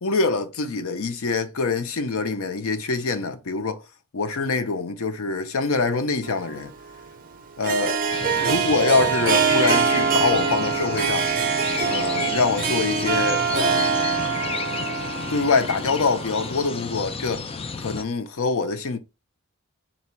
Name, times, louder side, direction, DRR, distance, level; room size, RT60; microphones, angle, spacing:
voice 1, 0.0-3.8 4.1-6.7 7.6-8.0 8.3-11.3 11.8-13.9 15.3-17.5 17.8-19.0, left 4 dB, 65° left, 0.6 m, -24 dB
Harp, 6.3-16.7, right 6 dB, 40° right, 0.5 m, -24 dB
sound 1, 8.1-18.0, left 5 dB, 25° left, 0.3 m, -32 dB
4.0 x 2.3 x 4.2 m
head